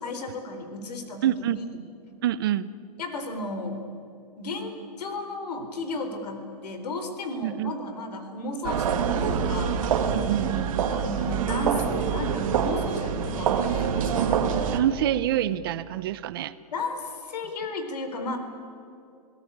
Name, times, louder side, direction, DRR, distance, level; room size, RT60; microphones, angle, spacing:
voice 1, 0.0-1.7 3.0-3.8 4.4-9.8 10.9-14.4 16.7-18.4, left 2 dB, 75° left, 7 dB, 4.2 m, -34 dB
voice 2, 1.2-1.6 2.2-2.7 7.4-7.7 10.1-10.9 14.7-16.5, right 12 dB, 35° right, 16 dB, 0.6 m, -26 dB
sound 1, 8.6-14.8, right 7 dB, 55° right, 2.0 m, -25 dB
29.0 x 17.5 x 8.7 m, 2.5 s
hypercardioid pair, 170°, 21 cm